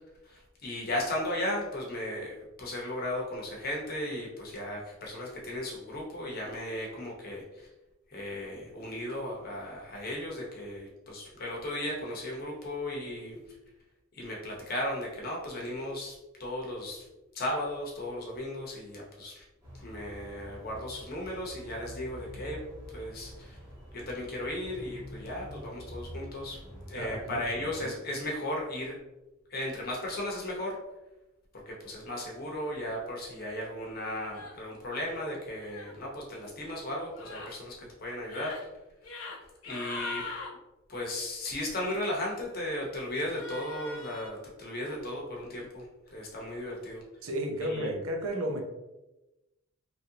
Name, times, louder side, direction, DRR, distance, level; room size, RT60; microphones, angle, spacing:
voice 1, 0.2-7.7 8.1-13.4 14.1-17.1 17.3-19.4 19.7-22.6 22.9-23.6 23.9-26.6 26.9-29.0 29.5-30.8 31.7-38.5 39.6-40.3 40.9-47.0 47.6-47.9, left 1 dB, 45° left, -2 dB, 0.8 m, -36 dB
sound 1, 19.6-27.9, equal, 15° right, 1.1 m, -46 dB
voice 2, 27.0-27.4 27.8-27.9 47.2-48.6, right 1 dB, 75° right, 2 dB, 0.6 m, -33 dB
sound 2, 34.3-34.6 35.6-35.9 37.1-37.5 38.2-38.6 39.0-39.4 39.6-40.5 43.3-44.3, left 3 dB, 85° left, 0.7 m, -41 dB
3.0 x 2.7 x 2.8 m, 1.0 s
head